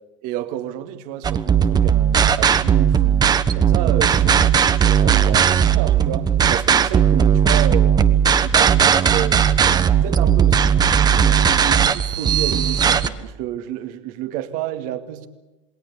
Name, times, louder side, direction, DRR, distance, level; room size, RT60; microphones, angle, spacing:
voice 1, 0.2-8.0 8.3-10.8 11.6-15.3, right 11 dB, 60° right, 2.2 m, -30 dB
sound 1, 1.2-13.1, right 8 dB, 25° right, 1.2 m, -17 dB
28.0 x 20.0 x 8.4 m
hypercardioid pair, 100°, 16 cm